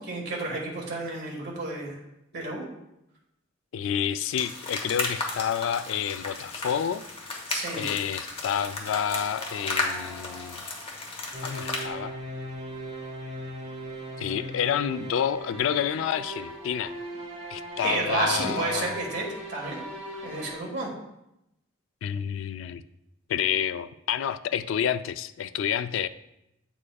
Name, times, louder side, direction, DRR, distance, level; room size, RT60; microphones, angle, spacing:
voice 1, 0.0-2.0 2.3-2.6 7.5-7.9 17.8-19.8 20.2-20.9, right 2 dB, 60° right, -3 dB, 1.5 m, -31 dB
voice 2, 3.7-7.1 7.8-10.6 11.4-12.2 14.2-16.9 17.5-19.0 22.0-22.8 23.3-26.1, left 8 dB, 75° left, 13 dB, 0.3 m, -29 dB
sound 1, 4.4-11.9, left 3 dB, 30° left, 1.0 m, -34 dB
sound 2, 8.9-11.4, equal, 10° right, 2.0 m, -45 dB
sound 3, 11.3-20.6, right 1 dB, 35° right, 1.1 m, -39 dB
8.6 x 4.9 x 2.3 m, 0.85 s
head